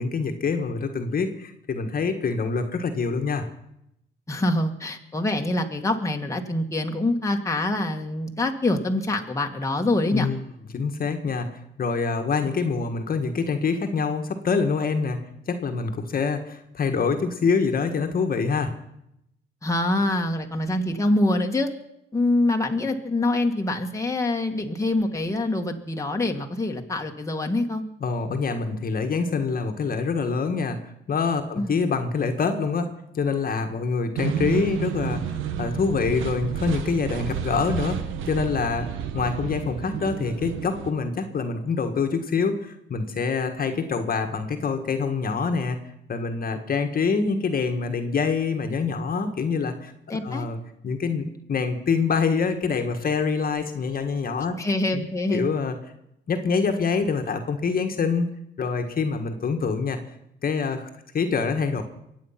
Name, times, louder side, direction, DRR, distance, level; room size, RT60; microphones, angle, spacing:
voice 1, 0.0-3.4 10.1-10.4 10.7-11.5 11.8-15.2 15.5-18.7 28.0-30.8 31.1-32.9 33.1-38.9 39.1-45.8 46.1-49.9 50.2-50.6 50.8-54.5 54.9-55.7 56.3-58.3 58.6-60.0 60.4-60.9 61.1-61.8, left 5 dB, 45° left, 6 dB, 1.6 m, -25 dB
voice 2, 4.3-10.3 12.4-12.5 19.6-21.7 22.1-27.8 31.6-31.8 50.1-50.5 54.6-55.5, left 2 dB, 15° left, 2 dB, 1.7 m, -25 dB
sound 1, 34.2-40.9, right 9 dB, 90° right, 1.1 m, -31 dB
23.5 x 8.7 x 5.8 m, 0.79 s
cardioid pair, 90°, 20 cm